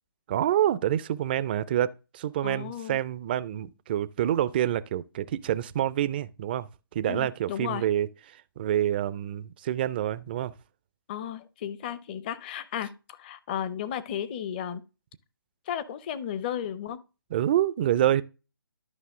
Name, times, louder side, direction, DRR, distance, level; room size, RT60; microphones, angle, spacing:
voice 1, 0.3-6.7 6.9-8.1 8.6-10.5 17.3-18.2, right 11 dB, 25° right, 0.4 m, -27 dB
voice 2, 2.4-3.0 7.1-7.8 11.1-14.8 15.7-17.0, left 9 dB, 25° left, 0.6 m, -34 dB
11.5 x 5.3 x 3.6 m
figure-of-eight pair, 145°, 12 cm